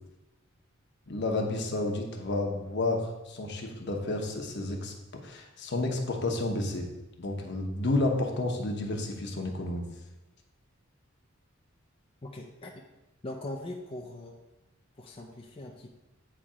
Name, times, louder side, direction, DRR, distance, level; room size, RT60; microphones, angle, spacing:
voice 1, 1.1-6.9 7.2-9.9, left 2 dB, 60° left, 2 dB, 0.9 m, -31 dB
voice 2, 12.2-12.8 13.2-14.4 15.0-15.9, left 1 dB, 25° left, 0 dB, 0.5 m, -41 dB
8.6 x 3.3 x 4.9 m, 1.0 s
head